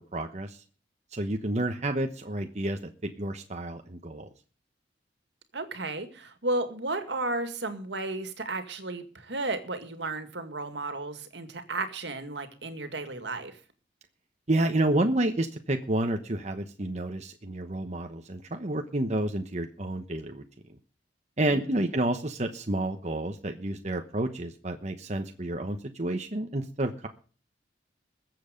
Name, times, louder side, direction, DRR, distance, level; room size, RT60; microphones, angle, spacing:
voice 1, 0.1-0.6 1.1-4.3 14.5-20.4 21.4-27.1, right 1 dB, 40° right, 5 dB, 1.1 m, -30 dB
voice 2, 5.5-13.6 21.5-21.8, right 2 dB, 70° right, 8 dB, 2.2 m, -33 dB
21.0 x 7.9 x 5.2 m, 0.40 s
head